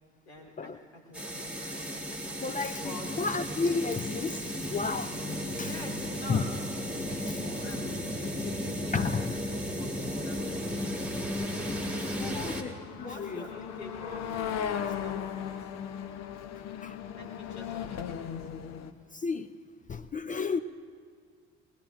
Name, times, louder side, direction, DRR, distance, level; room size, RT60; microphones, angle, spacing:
voice 1, 0.3-3.1 5.6-6.5 6.9-11.0 12.1-12.5 13.0-15.5 17.1-18.6, left 2 dB, 85° left, 0 dB, 2.2 m, -46 dB
sound 1, 1.1-12.6, equal, 5° right, 1.9 m, -34 dB
voice 2, 2.4-2.9 3.2-5.2 5.6-5.8 6.3-6.4 7.1-7.4 8.9-9.3 12.0-12.1 12.4-12.7 13.0-13.4 16.8-17.0 19.1-19.5 19.9-20.6, left 4 dB, 25° left, 11 dB, 0.5 m, -32 dB
sound 2, 5.3-18.9, left 8 dB, 55° left, 0.9 m, -40 dB
21.0 x 20.0 x 2.6 m, 2.1 s
hypercardioid pair, 50°, 32 cm